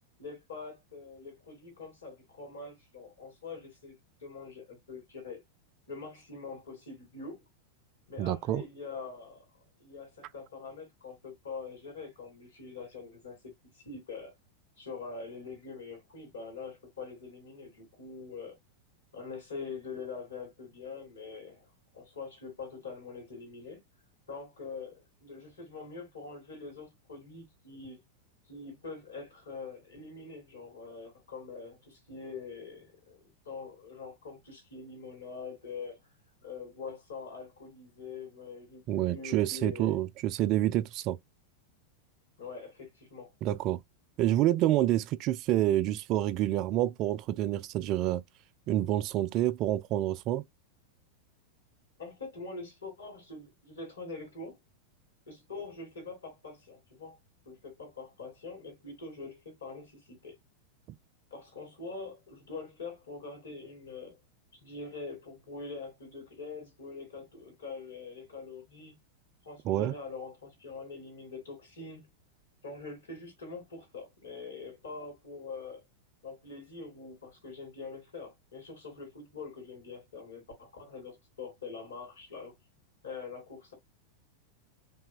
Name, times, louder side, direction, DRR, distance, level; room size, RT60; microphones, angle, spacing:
voice 1, 0.2-3.9 4.2-5.4 5.9-7.4 8.1-9.4 9.8-13.4 13.7-14.3 14.8-18.5 19.1-21.7 21.9-23.8 24.3-28.0 28.5-36.0 36.4-40.0 42.4-43.3 52.0-54.6 55.3-57.2 57.4-60.3 61.3-64.1 64.6-68.9 69.4-72.0 72.6-75.8 76.2-82.5 83.0-83.7, left 4 dB, 70° left, 3.3 m, -44 dB
voice 2, 8.2-8.6 38.9-41.2 43.4-43.8 44.2-48.2 48.7-50.4 69.7-69.9, right 13 dB, 40° right, 0.4 m, -28 dB
5.5 x 3.3 x 2.4 m
figure-of-eight pair, 90°, 0 cm